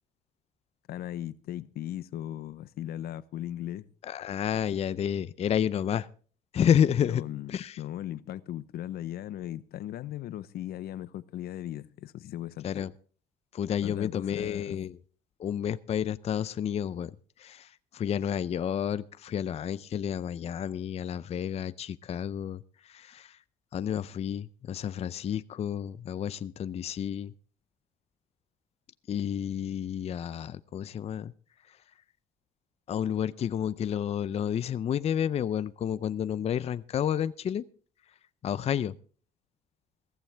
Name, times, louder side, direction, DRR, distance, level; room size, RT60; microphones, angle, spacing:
voice 1, 0.9-3.9 7.0-12.7 13.8-14.8, left 12 dB, 65° left, 0.7 m, -38 dB
voice 2, 4.0-6.1 6.5-7.2 7.5-7.8 12.6-12.9 13.5-15.0 15.4-23.4 23.7-27.3 29.1-31.3 31.7-31.8 32.9-37.6 38.4-39.0, left 9 dB, 40° left, 0.5 m, -30 dB
15.0 x 14.5 x 3.4 m
cardioid pair, 110°, 17 cm